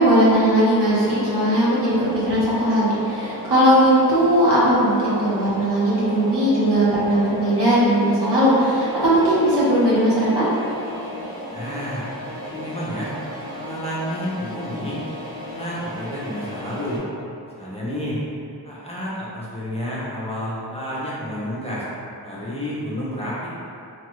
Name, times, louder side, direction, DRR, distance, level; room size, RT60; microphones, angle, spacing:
voice 1, 0.0-10.5, right 1 dB, 75° right, -9 dB, 1.1 m, -18 dB
sound 1, 0.7-17.0, equal, 55° right, 1.4 m, -35 dB
voice 2, 11.5-12.1 12.4-13.1 13.5-15.0 15.4-17.0 17.4-18.2 18.6-21.9 22.2-23.5, equal, 15° left, -9 dB, 0.6 m, -30 dB
2.9 x 2.3 x 3.0 m, 2.6 s
wide cardioid pair, 95°, 41 cm